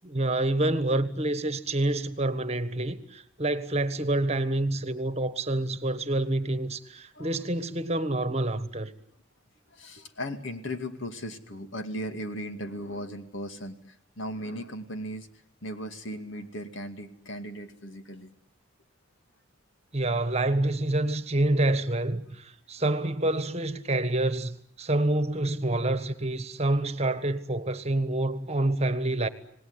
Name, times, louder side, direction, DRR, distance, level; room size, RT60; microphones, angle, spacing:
voice 1, 0.0-8.9 19.9-29.3, right 2 dB, 30° right, 1.5 m, -27 dB
voice 2, 9.7-15.3 15.6-18.3 21.6-21.7, equal, 65° left, 2.3 m, -37 dB
27.0 x 19.0 x 9.7 m
head